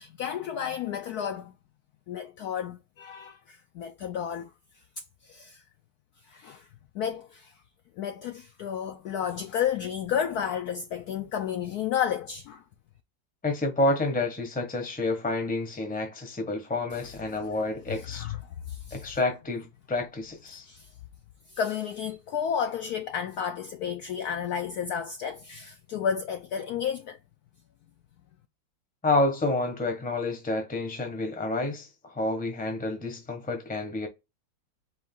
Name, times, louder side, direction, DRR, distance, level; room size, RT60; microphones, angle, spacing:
voice 1, 0.0-1.5 2.1-4.8 5.2-5.6 6.2-6.7 6.9-7.6 8.0-12.6 16.9-17.5 17.9-18.4 18.7-19.1 20.5-20.9 21.5-27.2, left 8 dB, 75° left, 0.9 m, -32 dB
voice 2, 13.4-18.2 18.9-20.6 29.0-34.1, left 2 dB, 5° left, 0.7 m, -29 dB
4.5 x 2.5 x 3.6 m
omnidirectional pair, 2.1 m